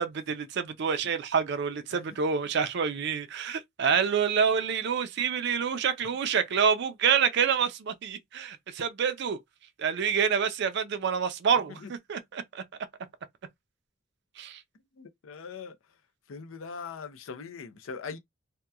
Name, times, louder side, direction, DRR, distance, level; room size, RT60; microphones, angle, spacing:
voice 1, 0.0-9.4 9.8-12.6 14.4-14.6, right 7 dB, 60° right, 0.4 m, -27 dB
voice 2, 15.0-15.8 16.3-18.2, left 5 dB, 90° left, 0.5 m, -41 dB
2.8 x 2.1 x 2.3 m
head